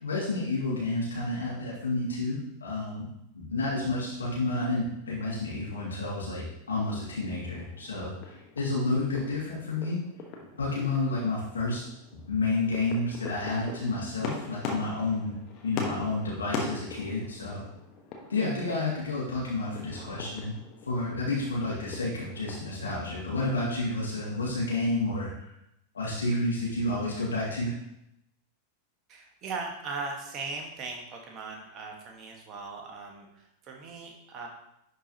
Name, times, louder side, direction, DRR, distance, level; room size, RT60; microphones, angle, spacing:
voice 1, 0.0-3.0 3.3-10.0 10.6-11.8 12.3-15.3 15.6-17.6 18.3-20.5 20.8-25.5 25.9-27.7, left 2 dB, 70° left, -5 dB, 2.2 m, -30 dB
sound 1, 6.7-22.9, left 4 dB, 40° left, 1.4 m, -42 dB
voice 2, 29.1-34.5, right 4 dB, 35° right, 1 dB, 1.6 m, -39 dB
11.0 x 4.6 x 3.0 m, 0.82 s
figure-of-eight pair, 90°, 0 cm